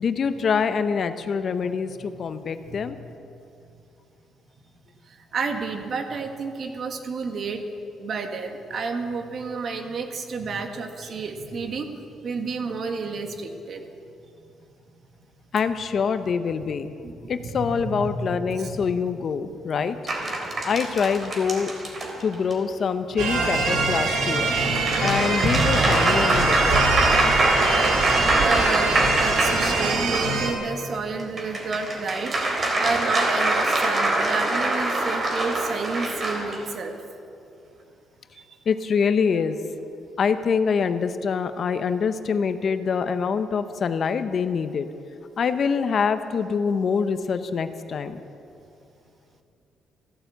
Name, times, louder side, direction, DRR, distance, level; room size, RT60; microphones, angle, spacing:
voice 1, 0.0-3.0 15.5-16.9 17.3-20.0 20.6-21.7 22.2-24.5 25.0-26.9 38.7-39.6 40.2-44.9 45.4-48.2, left 6 dB, 55° left, 10 dB, 0.9 m, -25 dB
voice 2, 5.3-7.6 8.0-11.9 12.2-13.8 17.0-18.2 18.5-18.9 19.8-20.0 20.9-21.0 24.8-25.0 28.4-37.0, right 4 dB, 55° right, 5 dB, 1.7 m, -30 dB
sound 1, 20.1-22.5 24.4-30.3 31.2-36.6, right 2 dB, 40° right, 3.4 m, -24 dB
sound 2, 23.2-30.5, right 3 dB, 85° right, 2.4 m, -23 dB
14.5 x 12.0 x 8.0 m, 2.6 s
cardioid pair, 90°, 0 cm